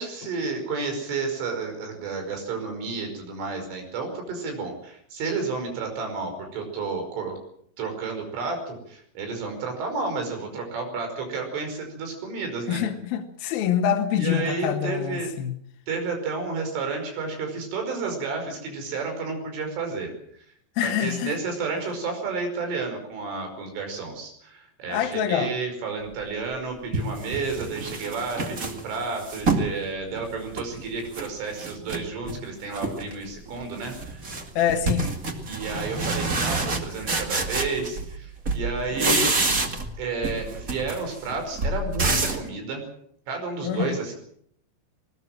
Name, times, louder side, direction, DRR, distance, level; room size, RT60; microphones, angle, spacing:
voice 1, 0.0-7.4 7.8-12.8 14.2-15.3 15.9-20.1 20.8-34.2 35.5-39.4 40.0-42.9 43.3-44.1, right 4 dB, 80° right, 7.7 m, -31 dB
voice 2, 12.7-15.6 20.8-21.3 24.9-25.5 34.6-35.1 43.6-43.9, left 9 dB, 65° left, 2.7 m, -25 dB
sound 1, 26.3-26.4 26.9-29.7 30.2-31.3 31.6-32.4 32.7-33.2 33.5-38.2 38.4-40.0 40.2-42.5, right 3 dB, 60° right, 0.8 m, -28 dB
21.0 x 19.5 x 7.6 m
omnidirectional pair, 5.5 m